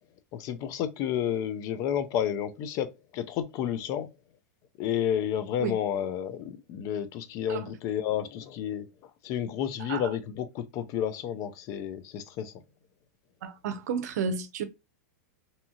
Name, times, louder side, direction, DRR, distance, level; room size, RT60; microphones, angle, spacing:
voice 1, 0.3-4.1 4.8-8.9 9.2-12.5, left 9 dB, 40° left, 0.4 m, -31 dB
voice 2, 13.4-14.6, right 6 dB, 70° right, 0.6 m, -31 dB
2.7 x 2.3 x 2.7 m
supercardioid pair, 135°, 9 cm